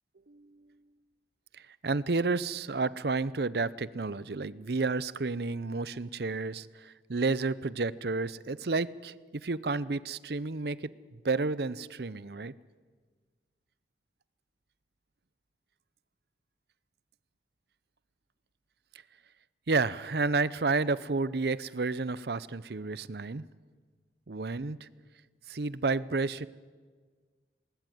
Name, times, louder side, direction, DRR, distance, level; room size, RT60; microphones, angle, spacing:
voice 1, 1.6-12.5 19.7-23.4 24.3-24.9 25.5-26.5, right 3 dB, 60° right, 18 dB, 0.7 m, -31 dB
19.5 x 19.5 x 9.2 m, 1.5 s
head